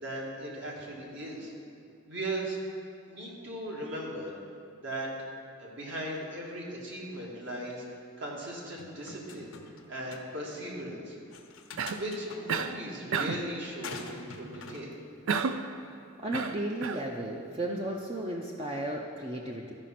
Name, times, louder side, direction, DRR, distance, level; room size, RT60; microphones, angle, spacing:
voice 1, 0.0-1.5 2.1-2.6 3.0-4.3 4.8-5.1 5.6-7.8 8.2-9.5 9.9-11.1 11.9-14.9, right 1 dB, 60° right, -3 dB, 2.0 m, -38 dB
sound 1, 8.8-9.8 10.1-10.2 11.3-12.4 13.8-14.8, left 4 dB, 85° left, 0.8 m, -44 dB
Cough, 11.8-12.1 12.5-12.8 13.1-13.5 15.3-15.7 16.3-17.1, right 5 dB, 80° right, 0.4 m, -31 dB
voice 2, 16.2-19.7, right 1 dB, 30° right, -1 dB, 0.6 m, -34 dB
13.0 x 5.1 x 5.8 m, 2.5 s
head